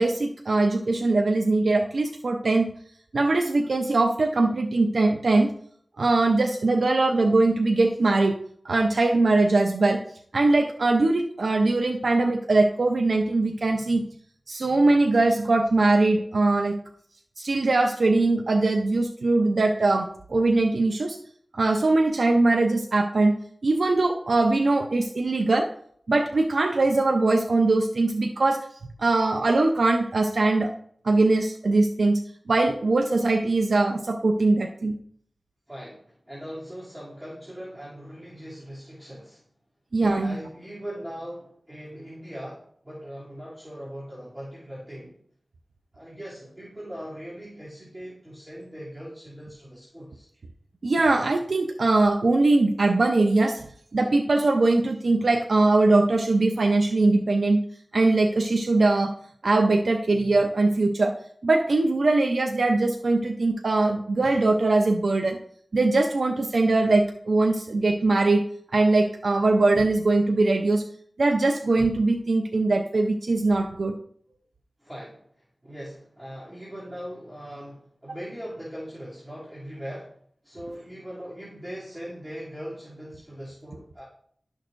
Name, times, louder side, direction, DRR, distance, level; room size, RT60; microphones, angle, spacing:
voice 1, 0.0-2.7 3.1-5.5 6.0-8.4 8.6-10.0 10.3-14.0 14.5-16.8 17.4-21.2 21.6-23.3 23.6-25.7 26.1-28.7 29.0-30.7 31.0-32.2 32.5-34.9 39.9-40.4 50.8-53.6 53.9-57.6 57.9-59.1 59.4-61.2 61.4-65.4 65.7-68.4 68.7-70.8 71.2-73.9, right 2 dB, 80° right, 3 dB, 0.5 m, -21 dB
voice 2, 35.7-39.4 40.2-45.1 45.9-50.3 74.8-80.2 80.4-84.0, equal, 15° right, -9 dB, 2.6 m, -40 dB
11.5 x 6.4 x 2.5 m, 0.64 s
wide cardioid pair, 50°, 0 cm